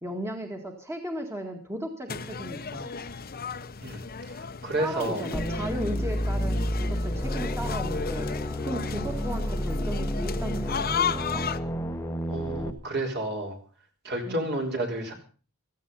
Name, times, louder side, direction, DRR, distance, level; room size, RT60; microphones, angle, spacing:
voice 1, 0.0-2.9 4.8-8.3 8.6-11.5 14.3-14.5, right 1 dB, 10° right, 3 dB, 1.9 m, -36 dB
sound 1, 2.1-11.6, left 6 dB, 45° left, 1.0 m, -35 dB
voice 2, 4.3-5.2 12.3-13.6 14.0-15.1, right 1 dB, 50° right, 2 dB, 4.1 m, -31 dB
sound 2, 5.3-12.7, equal, 15° left, 1.1 m, -30 dB
16.0 x 14.5 x 5.6 m, 0.39 s
head